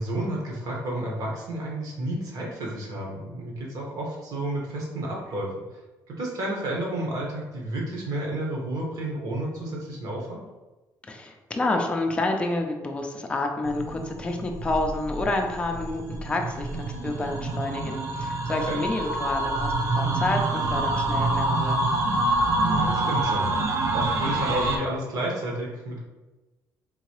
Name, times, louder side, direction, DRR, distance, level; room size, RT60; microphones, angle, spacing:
voice 1, 0.0-5.6 6.1-10.4 18.7-18.8 22.6-26.0, right 1 dB, 65° right, -2 dB, 1.2 m, -31 dB
voice 2, 11.0-21.8, left 2 dB, 15° left, 2 dB, 0.5 m, -29 dB
sound 1, 13.6-24.8, right 2 dB, 45° right, 0.5 m, -26 dB
3.9 x 2.7 x 3.0 m, 1.1 s
cardioid pair, 115°, 7 cm